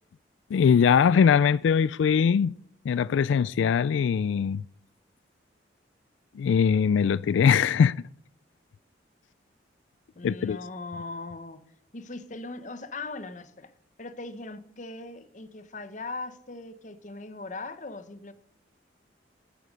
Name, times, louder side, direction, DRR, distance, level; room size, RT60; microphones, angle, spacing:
voice 1, 0.5-2.5 2.9-4.6 6.4-8.1 10.2-10.6, left 7 dB, 90° left, 0.3 m, -21 dB
voice 2, 10.1-11.6 11.9-13.7 14.0-18.3, left 3 dB, 40° left, 0.9 m, -39 dB
11.0 x 9.2 x 5.3 m
head